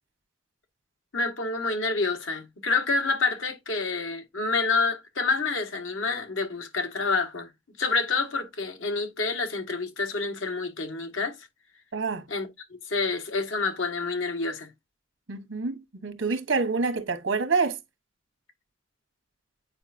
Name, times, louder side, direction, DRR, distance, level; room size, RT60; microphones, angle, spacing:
voice 1, 1.1-7.5 7.8-11.5 12.3-12.5 12.9-14.7, left 3 dB, 90° left, 1.5 m, -28 dB
voice 2, 11.9-12.3 15.3-17.8, right 4 dB, 85° right, 1.0 m, -27 dB
8.8 x 4.5 x 2.6 m
head